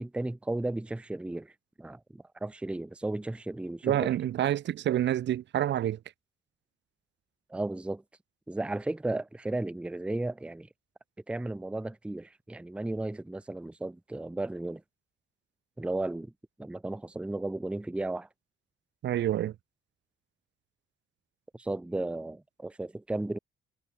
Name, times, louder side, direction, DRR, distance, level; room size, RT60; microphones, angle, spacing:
voice 1, 0.0-1.5 1.8-4.1 7.5-8.0 8.5-10.7 11.3-14.8 15.8-16.3 16.6-18.3 21.5-23.4, right 2 dB, 5° right, 0.6 m, -34 dB
voice 2, 3.8-6.0 19.0-19.5, right 11 dB, 65° right, 0.9 m, -28 dB
cardioid pair, 90°, 20 cm